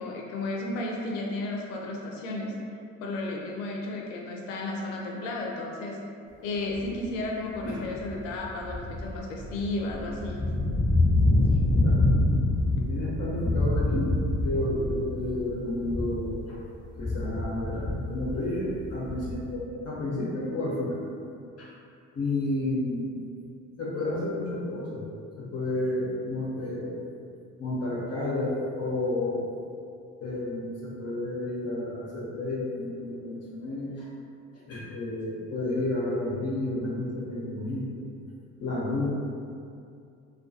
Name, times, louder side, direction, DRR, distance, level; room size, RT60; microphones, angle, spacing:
voice 1, 0.0-2.5 3.0-6.0 6.4-10.4, left 2 dB, 75° left, -1 dB, 0.6 m, -33 dB
sound 1, 6.8-7.1 7.5-16.3 16.7-19.5, left 2 dB, 5° right, 0.9 m, -26 dB
voice 2, 11.2-12.0 12.7-14.1 14.4-16.6 17.0-21.0 21.6-21.7 22.1-23.4 23.8-25.0 25.4-27.0 27.6-29.5 30.2-34.1 34.7-38.0 38.6-39.1, left 1 dB, 40° left, -6 dB, 0.7 m, -31 dB
2.3 x 2.2 x 2.6 m, 2.5 s
hypercardioid pair, 60°, 40 cm